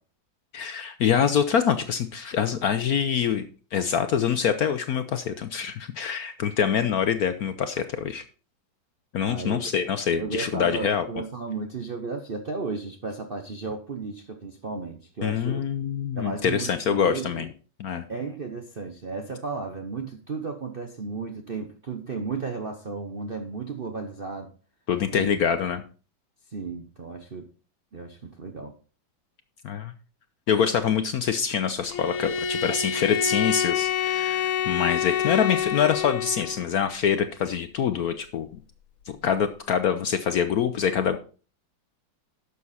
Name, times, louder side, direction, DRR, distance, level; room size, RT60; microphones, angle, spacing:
voice 1, 0.5-8.2 9.1-11.0 15.2-17.5 17.8-18.1 24.9-25.8 29.6-29.9 30.5-38.5 39.1-41.2, left 8 dB, 65° left, 10 dB, 1.0 m, -25 dB
voice 2, 9.2-15.7 16.1-17.5 18.1-24.5 25.1-25.3 26.5-27.5 27.9-28.7, right 4 dB, 50° right, 5 dB, 0.7 m, -34 dB
Bowed string instrument, 31.9-36.7, left 8 dB, 85° left, 1.6 m, -27 dB
11.0 x 7.0 x 4.2 m, 0.37 s
omnidirectional pair, 2.1 m